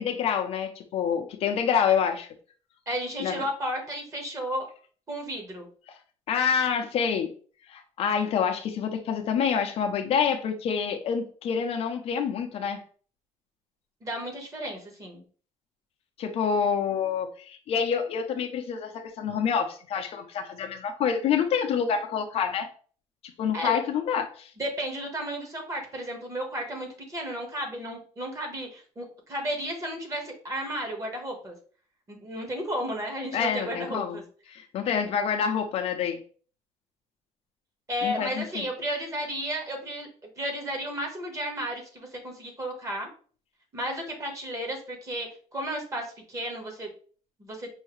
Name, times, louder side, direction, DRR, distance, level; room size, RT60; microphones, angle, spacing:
voice 1, 0.0-2.3 3.2-3.4 6.3-7.3 7.7-12.8 16.2-22.7 23.4-24.5 33.3-34.2 34.5-36.2 38.0-38.5, left 7 dB, 55° left, 5 dB, 0.6 m, -27 dB
voice 2, 2.9-4.7 5.1-5.7 14.0-15.2 19.3-19.4 23.5-23.8 24.6-31.5 32.1-34.2 37.9-40.1 40.4-43.1 43.7-46.9 47.4-47.7, equal, 25° right, 1 dB, 1.3 m, -33 dB
5.5 x 2.7 x 3.1 m, 0.42 s
cardioid pair, 165°, 12 cm